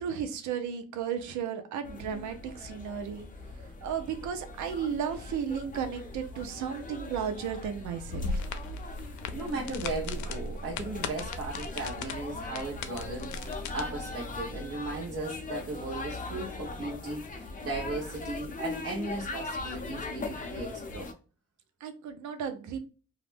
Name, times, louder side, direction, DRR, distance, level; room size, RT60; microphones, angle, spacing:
voice 1, 0.0-3.3 3.8-8.5 21.8-22.8, right 7 dB, 70° right, 0.6 m, -34 dB
sound 1, 1.8-21.1, left 3 dB, 25° left, 0.5 m, -40 dB
sound 2, 8.0-13.8, left 3 dB, 70° left, 0.5 m, -37 dB
voice 2, 9.3-21.1, right 2 dB, 50° right, 0.9 m, -37 dB
2.4 x 2.1 x 3.3 m
cardioid pair, 90°, 30 cm